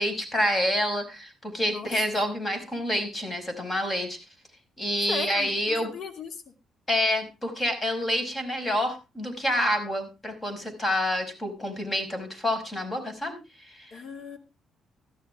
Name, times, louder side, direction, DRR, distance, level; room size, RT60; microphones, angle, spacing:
voice 1, 0.0-4.2 4.8-5.9 6.9-13.9, left 1 dB, 25° left, 6 dB, 5.2 m, -28 dB
voice 2, 1.7-2.2 5.1-6.4 13.9-14.4, left 4 dB, 60° left, 7 dB, 2.3 m, -37 dB
14.5 x 12.5 x 3.6 m, 0.29 s
cardioid pair, 90°, 0 cm